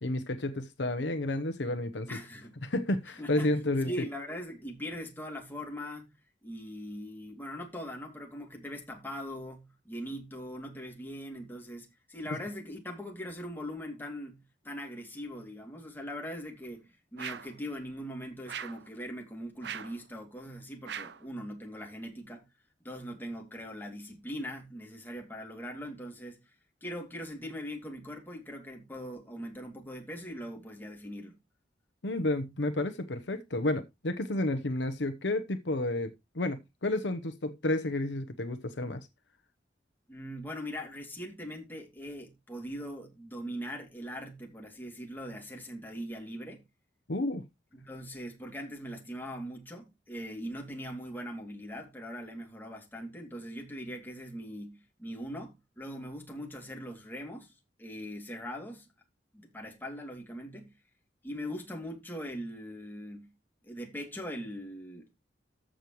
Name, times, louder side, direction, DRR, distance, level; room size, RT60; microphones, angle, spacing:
voice 1, 0.0-2.1 2.6-4.1 32.0-39.0 47.1-47.4, left 2 dB, 75° left, 0.9 m, -31 dB
voice 2, 2.1-2.6 3.2-3.5 3.8-6.1 6.4-14.4 14.6-22.4 22.8-26.4 26.8-31.4 40.1-46.6 47.7-57.5 57.8-58.9 59.3-60.7 61.2-63.3 63.6-65.1, equal, 10° left, 2.6 m, -41 dB
sound 1, 17.2-17.6 18.5-18.9 19.6-20.0 20.8-21.3, right 8 dB, 65° right, 0.7 m, -40 dB
14.0 x 6.4 x 3.1 m
head